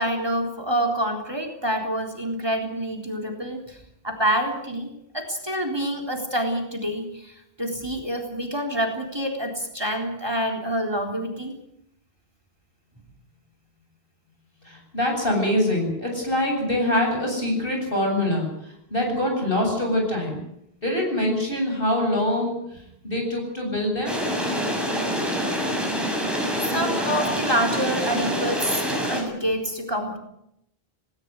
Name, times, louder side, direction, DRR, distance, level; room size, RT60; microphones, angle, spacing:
voice 1, 0.0-3.8 4.0-4.9 5.1-11.6 26.6-30.2, right 1 dB, 25° right, 2 dB, 3.8 m, -27 dB
voice 2, 14.6-18.5 18.9-20.4 20.8-22.6 23.0-24.2, left 1 dB, 60° left, 2 dB, 8.3 m, -24 dB
sound 1, 24.1-29.2, equal, ahead, 6.9 m, -26 dB
19.5 x 18.5 x 9.5 m, 0.79 s
omnidirectional pair, 1.0 m